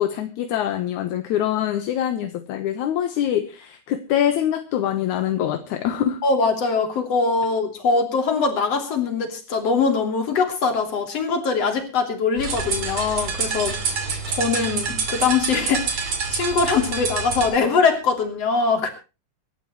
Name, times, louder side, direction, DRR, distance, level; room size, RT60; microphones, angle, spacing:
voice 1, 0.0-6.2, left 10 dB, 75° left, 8 dB, 2.4 m, -24 dB
voice 2, 6.2-18.9, left 4 dB, 50° left, 5 dB, 4.1 m, -22 dB
sound 1, 12.4-17.5, right 5 dB, 60° right, 3.8 m, -27 dB
25.0 x 12.5 x 3.0 m, 0.32 s
omnidirectional pair, 3.6 m